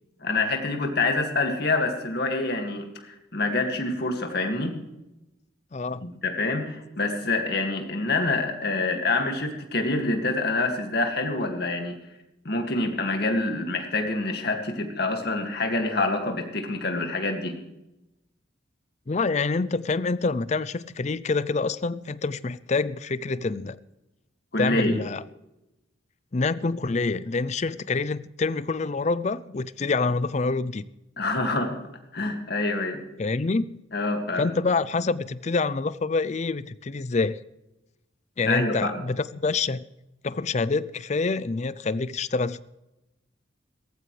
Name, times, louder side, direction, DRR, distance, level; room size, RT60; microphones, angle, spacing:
voice 1, 0.2-4.8 6.0-12.0 12.4-17.6 24.5-25.0 31.2-31.8 32.1-33.0 33.9-34.5 38.4-38.9, left 2 dB, 55° left, 2.2 m, -26 dB
voice 2, 5.7-6.1 19.1-23.8 24.6-25.2 26.3-30.8 33.2-33.8 34.3-37.4 38.4-39.8 40.2-42.6, left 3 dB, 35° left, 0.5 m, -26 dB
17.5 x 14.5 x 3.3 m
head